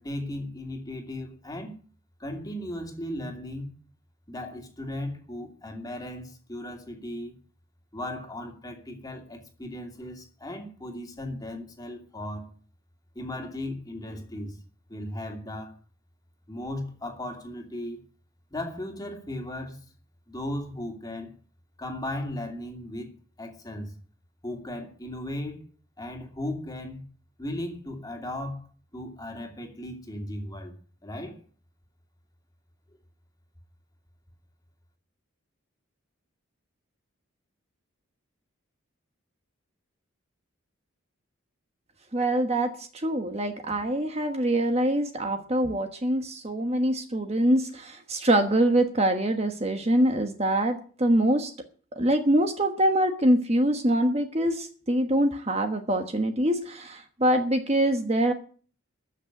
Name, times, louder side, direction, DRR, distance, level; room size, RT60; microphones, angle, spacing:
voice 1, 0.0-1.8 2.2-3.7 4.3-7.3 7.9-12.5 13.1-14.6 14.9-15.8 16.5-18.0 18.5-19.9 20.3-21.3 21.8-23.1 23.4-23.9 24.4-25.7 26.0-27.0 27.4-28.7 28.9-30.7 31.0-31.4, left 1 dB, 15° left, 2.5 m, -36 dB
voice 2, 42.1-51.5 52.0-58.3, right 1 dB, 30° right, 1.2 m, -24 dB
14.0 x 6.5 x 10.0 m
head